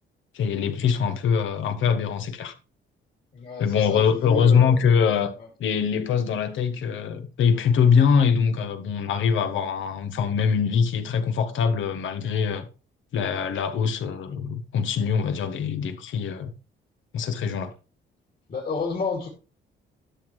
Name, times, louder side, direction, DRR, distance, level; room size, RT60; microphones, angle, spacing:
voice 1, 0.3-2.5 3.6-5.3 5.6-12.7 13.1-16.5 17.1-17.7, left 6 dB, 75° left, 1.2 m, -23 dB
voice 2, 3.3-4.9 18.5-19.3, left 4 dB, 45° left, 2.5 m, -31 dB
11.5 x 6.3 x 3.2 m
cardioid pair, 90°, 20 cm